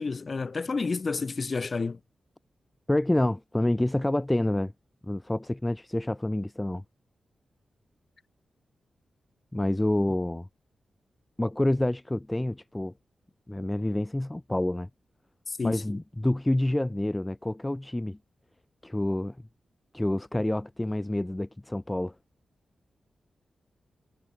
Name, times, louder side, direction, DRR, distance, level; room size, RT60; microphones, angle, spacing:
voice 1, 0.0-2.0 15.5-16.0, left 4 dB, 50° left, 1.0 m, -30 dB
voice 2, 2.9-4.7 5.0-6.8 9.5-10.5 11.4-12.9 13.5-14.9 15.6-18.2 18.8-19.4 19.9-22.1, left 1 dB, 15° left, 1.5 m, -28 dB
supercardioid pair, 45°, 0 cm